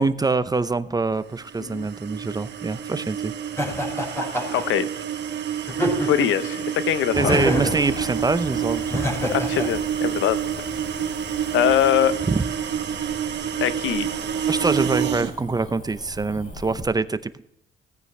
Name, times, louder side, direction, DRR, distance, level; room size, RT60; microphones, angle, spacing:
voice 1, 0.0-3.3 7.2-9.1 12.3-12.5 14.5-17.4, right 3 dB, 20° right, 13 dB, 0.7 m, -24 dB
sound 1, 1.4-15.3, right 9 dB, 60° right, 1.3 m, -28 dB
Laughter, 3.6-4.6 5.7-6.4 7.3-7.8 8.9-9.7, equal, 10° left, 5.2 m, -26 dB
voice 2, 4.5-4.9 6.0-7.4 9.3-10.4 11.5-12.2 13.6-14.1, left 11 dB, 80° left, 14 dB, 0.8 m, -22 dB
Cricket / Motor vehicle (road), 7.1-16.9, left 1 dB, 40° left, 5.0 m, -37 dB
17.0 x 9.3 x 3.3 m, 0.80 s
cardioid pair, 90°, 20 cm